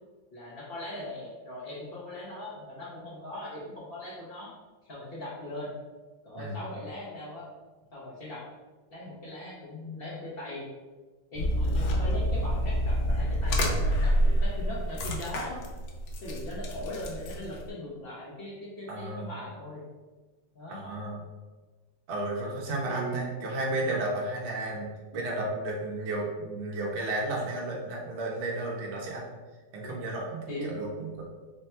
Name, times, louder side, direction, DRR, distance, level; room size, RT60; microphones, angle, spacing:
voice 1, 0.3-4.5 4.8-5.7 6.2-7.5 7.9-8.4 8.9-10.7 11.3-15.6 16.2-19.8 20.5-20.8 22.8-23.4 29.8-30.0 30.5-30.7, left 1 dB, 55° left, -6 dB, 0.6 m, -40 dB
voice 2, 6.3-6.8 18.9-19.3 20.7-21.2 22.1-29.3 29.7-31.2, right 2 dB, 55° right, -2 dB, 0.8 m, -33 dB
sound 1, 11.3-17.7, equal, 75° left, 1.2 m, -28 dB
3.3 x 2.2 x 4.2 m, 1.3 s
omnidirectional pair, 2.0 m